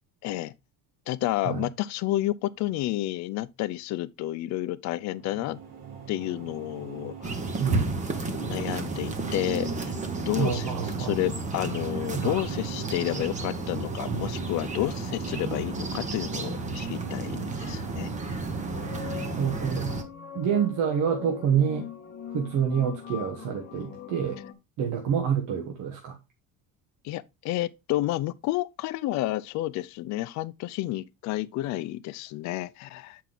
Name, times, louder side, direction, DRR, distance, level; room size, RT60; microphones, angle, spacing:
voice 1, 0.2-0.5 1.1-5.6 6.1-7.3 8.2-9.9 10.3-10.7 11.0-18.4 27.0-33.2, left 16 dB, 60° left, 0.5 m, -30 dB
sound 1, 4.9-20.2, right 6 dB, 90° right, 2.4 m, -44 dB
sound 2, 7.2-20.0, right 3 dB, 20° right, 0.9 m, -32 dB
voice 2, 7.6-8.0 10.4-11.2 12.1-12.4 19.3-19.9 20.3-21.9 22.3-24.4 24.8-26.2, right 8 dB, 75° right, 1.3 m, -27 dB
sound 3, 18.4-24.5, left 10 dB, 30° left, 0.9 m, -41 dB
7.5 x 4.7 x 3.8 m
cardioid pair, 160°, 33 cm